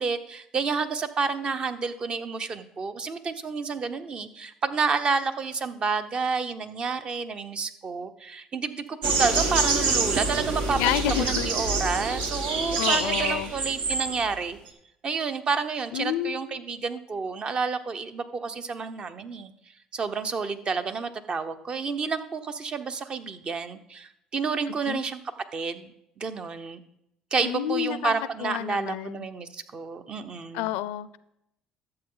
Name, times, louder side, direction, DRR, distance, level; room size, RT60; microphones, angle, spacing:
voice 1, 0.0-10.8 11.2-14.6 15.0-19.5 19.9-25.2 25.5-25.9 26.2-26.8 27.3-30.7, right 5 dB, 40° right, 10 dB, 0.9 m, -30 dB
sound 1, 9.0-14.4, right 3 dB, 75° right, 1.4 m, -26 dB
voice 2, 10.8-11.5 12.8-13.5 15.9-16.6 24.7-25.0 27.4-28.1 28.4-29.3 30.5-31.2, left 13 dB, 90° left, 17 dB, 0.4 m, -29 dB
12.0 x 7.8 x 3.9 m, 0.80 s
supercardioid pair, 85°, 2 cm